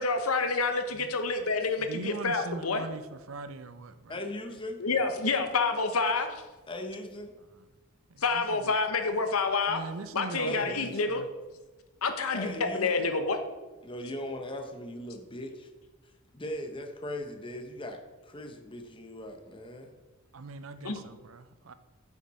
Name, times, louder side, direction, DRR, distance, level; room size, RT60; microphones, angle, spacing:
voice 1, 0.0-2.9 4.8-6.4 8.2-9.8 10.1-11.2 12.0-13.4 20.8-21.0, left 4 dB, 85° left, 7 dB, 1.1 m, -28 dB
voice 2, 1.8-4.2 8.1-8.7 9.7-11.3 20.3-21.7, right 4 dB, 70° right, 12 dB, 0.6 m, -41 dB
voice 3, 4.1-4.8 6.7-7.3 10.4-11.1 12.3-13.1 13.8-15.7 16.3-18.0 18.3-19.9 20.8-20.9, left 1 dB, 25° left, 4 dB, 1.0 m, -39 dB
9.4 x 7.2 x 4.2 m, 1.2 s
head